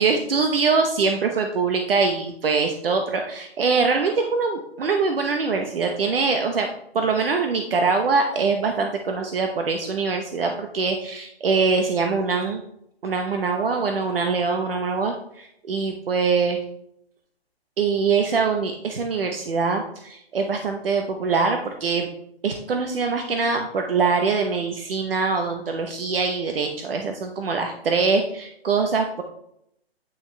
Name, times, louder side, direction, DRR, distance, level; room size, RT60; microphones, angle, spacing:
voice 1, 0.0-6.7 6.9-12.6 13.0-16.6 17.8-22.1 22.4-29.2, right 4 dB, 60° right, 4 dB, 1.0 m, -23 dB
9.1 x 6.0 x 3.3 m, 0.74 s
hypercardioid pair, 165°, 32 cm